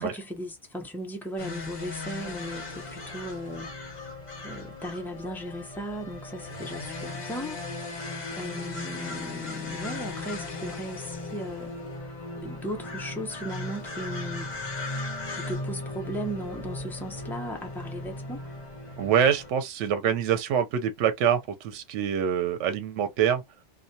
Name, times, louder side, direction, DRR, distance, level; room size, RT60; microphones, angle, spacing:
voice 1, 0.0-3.7 4.4-7.6 8.4-11.7 12.4-14.5 15.3-18.4, equal, ahead, 0.5 m, -36 dB
sound 1, 1.4-19.5, left 2 dB, 40° left, 0.9 m, -37 dB
voice 2, 19.0-23.4, right 8 dB, 80° right, 0.9 m, -25 dB
2.2 x 2.1 x 2.6 m
omnidirectional pair, 1.2 m